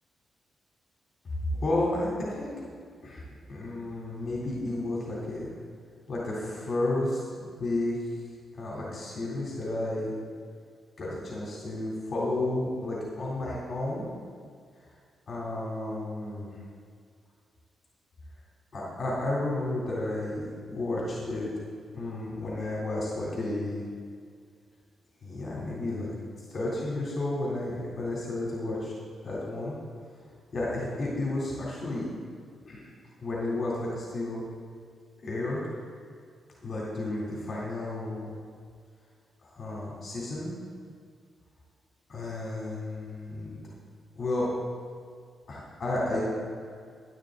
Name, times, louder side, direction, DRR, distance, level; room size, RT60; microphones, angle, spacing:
voice 1, 1.5-2.5 3.0-5.5 6.1-8.0 8.5-10.1 11.0-14.1 15.3-16.5 18.7-20.4 20.7-21.5 21.9-23.8 25.2-26.1 26.5-28.9 29.2-29.7 30.5-32.1 32.7-32.9 33.2-34.4 35.2-35.6 36.6-38.3 39.4-40.5 42.1-43.6 44.1-44.5 45.5-46.2, left 2 dB, 45° left, -5 dB, 3.3 m, -32 dB
12.0 x 11.0 x 3.9 m, 2.1 s
cardioid pair, 105°, 0 cm